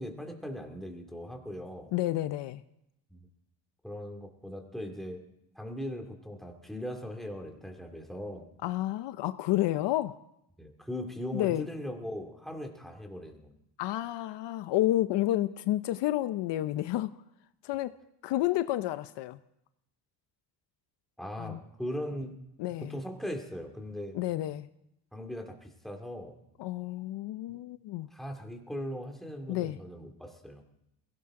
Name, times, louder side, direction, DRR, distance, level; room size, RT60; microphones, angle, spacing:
voice 1, 0.0-1.9 3.1-3.3 3.8-5.2 5.6-8.5 10.6-13.5 21.2-22.4 22.8-24.2 25.1-26.4 27.5-27.6 28.1-30.6, equal, ahead, 2.3 m, -39 dB
voice 2, 1.9-2.6 8.6-10.2 11.3-11.7 13.8-17.1 17.6-17.9 18.2-19.4 21.4-21.6 22.6-22.9 24.1-24.7 26.6-28.1 29.5-29.8, left 15 dB, 65° left, 0.7 m, -30 dB
22.0 x 17.0 x 3.7 m
cardioid pair, 145°, 45 cm